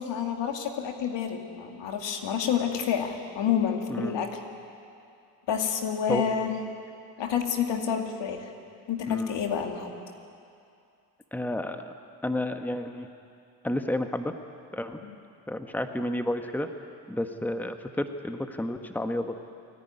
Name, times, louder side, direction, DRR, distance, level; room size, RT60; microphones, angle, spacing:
voice 1, 0.0-4.3 5.5-6.5 7.2-8.5 8.9-9.9 15.0-15.2, left 8 dB, 65° left, 4 dB, 2.3 m, -29 dB
voice 2, 9.1-9.4 11.3-11.9 12.2-13.1 13.6-14.3 14.7-15.0 15.5-16.7 17.1-19.4, left 1 dB, 5° left, 7 dB, 1.4 m, -31 dB
28.0 x 11.0 x 9.5 m, 2.5 s
hypercardioid pair, 45°, 47 cm